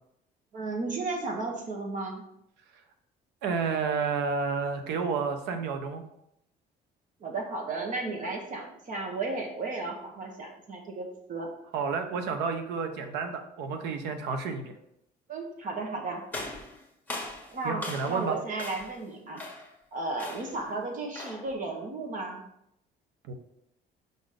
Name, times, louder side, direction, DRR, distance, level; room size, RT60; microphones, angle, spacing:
voice 1, 0.5-2.2 7.2-11.5 15.3-16.2 17.5-19.4 19.9-22.4, right 3 dB, 50° right, 2 dB, 1.5 m, -34 dB
voice 2, 3.4-6.0 11.7-14.7 17.6-18.4 23.3-23.4, right 5 dB, 90° right, 7 dB, 0.9 m, -30 dB
sound 1, 16.3-18.3 18.6-19.0 19.4-19.8 20.2-20.6 21.1-21.5, left 2 dB, 10° left, 1.5 m, -39 dB
5.4 x 4.0 x 5.0 m, 0.78 s
cardioid pair, 110°, 17 cm